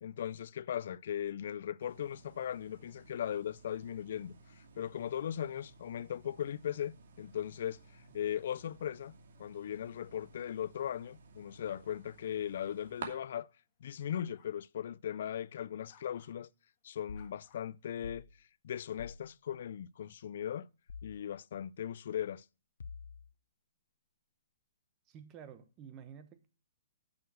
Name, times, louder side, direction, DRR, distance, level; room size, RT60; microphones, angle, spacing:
voice 1, 0.0-9.1 9.4-13.5 13.8-16.5 16.8-18.3 18.6-20.7 21.0-22.4, left 10 dB, 55° left, 0.4 m, -38 dB
sound 1, 1.8-13.1, right 5 dB, 65° right, 2.8 m, -54 dB
sound 2, 14.1-14.5 15.5-16.3 17.1-18.1, left 8 dB, 35° left, 1.6 m, -63 dB
sound 3, 17.1-17.3 18.0-18.3 19.0-19.2 20.9-21.2 22.8-23.3, left 5 dB, 90° left, 0.7 m, -46 dB
voice 2, 25.1-26.5, right 8 dB, 20° right, 1.0 m, -51 dB
9.4 x 6.6 x 6.2 m
hypercardioid pair, 165°, 0 cm